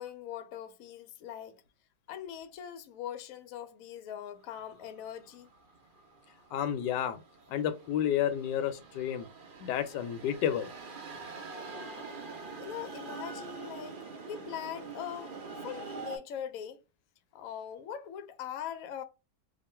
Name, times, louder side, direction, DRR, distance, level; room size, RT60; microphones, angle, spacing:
voice 1, 0.0-1.6 2.1-5.5 11.7-12.1 12.6-15.4 15.6-16.8 17.3-19.0, left 9 dB, 65° left, 0.9 m, -41 dB
sound 1, 4.5-16.2, right 4 dB, 65° right, 0.5 m, -45 dB
voice 2, 6.5-7.2 7.5-9.3 9.6-10.7, left 10 dB, 85° left, 1.2 m, -31 dB
3.0 x 2.4 x 4.2 m
omnidirectional pair, 1.9 m